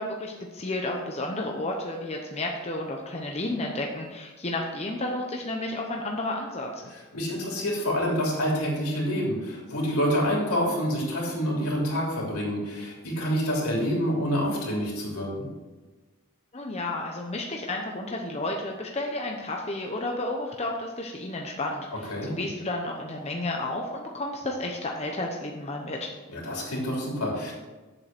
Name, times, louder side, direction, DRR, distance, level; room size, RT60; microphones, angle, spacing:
voice 1, 0.0-6.7 16.5-26.1, left 2 dB, 30° left, 1 dB, 0.8 m, -32 dB
voice 2, 7.1-15.5 22.1-22.4 26.3-27.5, equal, 80° left, -3 dB, 3.3 m, -27 dB
7.7 x 7.7 x 5.9 m, 1.2 s
head